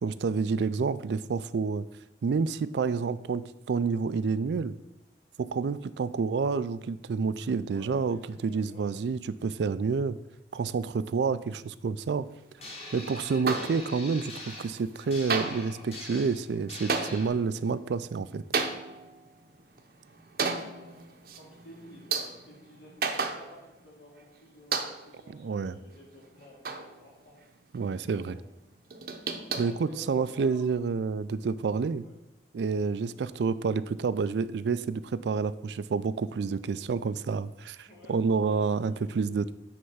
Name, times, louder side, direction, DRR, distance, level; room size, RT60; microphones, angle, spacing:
voice 1, 0.0-1.9 2.2-4.8 5.4-10.2 10.5-12.3 12.9-18.4 25.3-25.7 27.7-28.4 29.6-32.0 32.5-39.5, right 5 dB, 80° right, 15 dB, 0.4 m, -29 dB
voice 2, 7.7-8.9 20.4-27.4 28.0-28.4 29.5-30.7 32.0-32.2 33.0-33.2 37.7-39.1, equal, 80° left, -4 dB, 2.9 m, -53 dB
sound 1, 12.6-17.3, left 2 dB, 35° left, 1.6 m, -43 dB
sound 2, 13.4-14.2 14.5-15.0 15.3-23.9 24.2-24.3 24.7-25.3 25.7-27.4 27.7-28.2 28.6-30.5, right 4 dB, 55° right, 0.7 m, -34 dB
9.4 x 3.4 x 5.6 m, 0.90 s
head